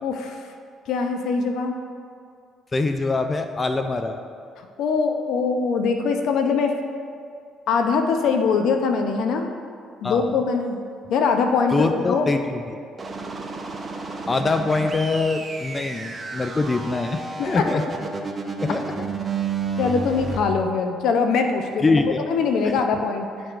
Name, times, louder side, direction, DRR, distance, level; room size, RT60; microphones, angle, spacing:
voice 1, 0.0-0.5 0.9-1.8 4.6-6.8 7.7-9.5 10.0-10.8 11.1-12.3 17.4-17.7 19.8-23.3, left 5 dB, 70° left, 5 dB, 0.6 m, -22 dB
voice 2, 2.7-4.2 10.0-10.3 11.7-12.8 14.3-17.8 18.6-18.8 21.8-22.2 22.6-22.7, left 3 dB, 25° left, 6 dB, 0.4 m, -23 dB
sound 1, 13.0-20.4, right 4 dB, 35° right, 0.7 m, -31 dB
10.5 x 4.7 x 2.5 m, 2.3 s
supercardioid pair, 80°, 0 cm